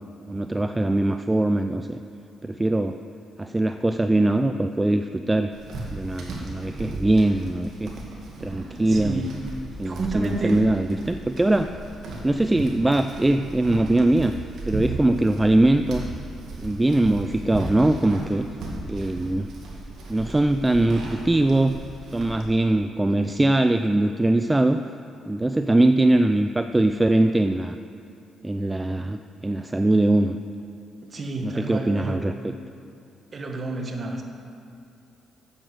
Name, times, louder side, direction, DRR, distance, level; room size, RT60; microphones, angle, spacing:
voice 1, 0.3-2.0 2.4-3.0 3.4-5.5 5.9-7.9 8.4-9.3 9.8-11.7 12.2-14.3 14.7-16.0 16.6-18.5 18.9-19.5 20.1-21.8 22.1-24.8 25.3-27.8 28.4-30.4 31.4-32.5, right 2 dB, 15° right, 8 dB, 0.3 m, -21 dB
sound 1, 5.5-22.5, right 2 dB, 65° right, 2.1 m, -36 dB
voice 2, 8.9-9.3 9.8-10.7 31.0-32.3 33.3-34.2, right 2 dB, 35° right, 3 dB, 1.3 m, -30 dB
8.8 x 7.9 x 6.4 m, 2.6 s
cardioid pair, 90°, 0 cm